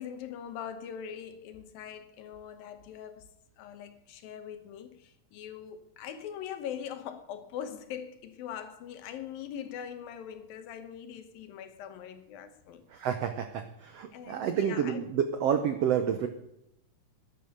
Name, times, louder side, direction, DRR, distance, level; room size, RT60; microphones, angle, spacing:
voice 1, 0.0-3.3 3.6-12.8 14.1-15.1, left 9 dB, 80° left, 2.9 m, -42 dB
voice 2, 12.9-16.3, right 8 dB, 85° right, 1.4 m, -29 dB
11.0 x 11.0 x 6.6 m
omnidirectional pair, 4.1 m